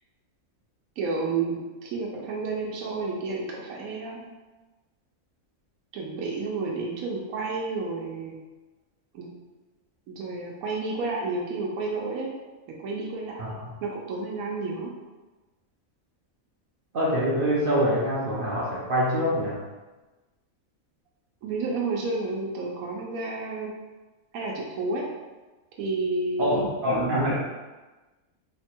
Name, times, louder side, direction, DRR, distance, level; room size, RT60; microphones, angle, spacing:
voice 1, 1.0-4.3 5.9-8.4 9.1-9.3 10.1-12.3 12.8-14.9 21.4-23.7 24.3-25.1 25.8-26.7, right 3 dB, 80° right, -2 dB, 1.1 m, -31 dB
voice 2, 13.4-13.7 16.9-19.6 26.4-27.3, equal, 55° right, -5 dB, 0.6 m, -25 dB
3.2 x 2.2 x 4.3 m, 1.2 s
omnidirectional pair, 1.5 m